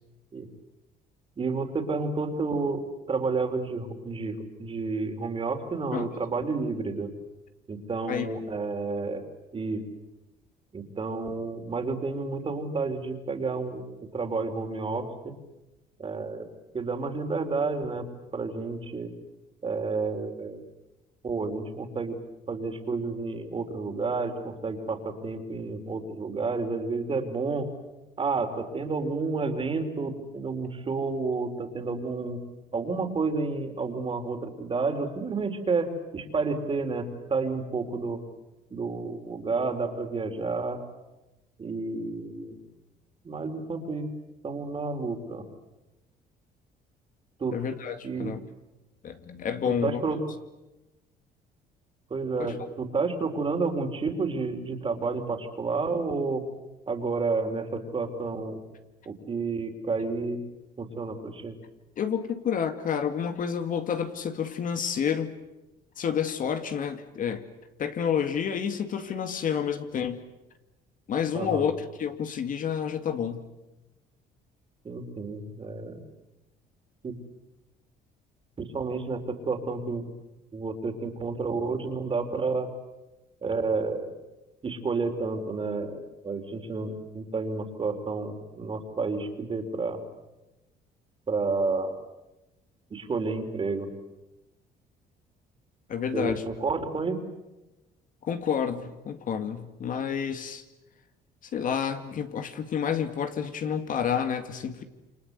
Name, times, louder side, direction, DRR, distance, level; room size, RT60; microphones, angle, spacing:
voice 1, 1.4-7.1 7.7-9.2 9.5-9.8 10.7-15.3 16.0-16.5 16.7-18.1 18.3-19.1 19.6-20.6 21.2-22.2 22.5-27.7 28.2-32.4 32.7-38.2 38.7-40.8 41.6-42.6 43.2-44.1 44.4-45.4 47.4-47.6 48.0-48.3 49.7-50.2 52.1-56.4 56.9-58.6 59.1-60.4 60.8-61.6 71.4-71.7 74.8-76.0 77.0-77.2 78.6-80.1 80.5-82.7 83.4-84.1 84.6-86.0 86.2-90.0 91.3-91.9 92.9-93.9 96.1-97.2, right 4 dB, 30° right, 6 dB, 3.9 m, -30 dB
voice 2, 47.5-48.4 49.0-50.0 62.0-65.4 66.0-67.4 67.8-70.2 71.1-71.7 72.0-73.5 95.9-96.4 98.2-100.6 101.5-104.8, left 7 dB, 50° left, 8 dB, 2.2 m, -29 dB
28.5 x 25.5 x 8.2 m, 1.0 s
cardioid pair, 110°, 17 cm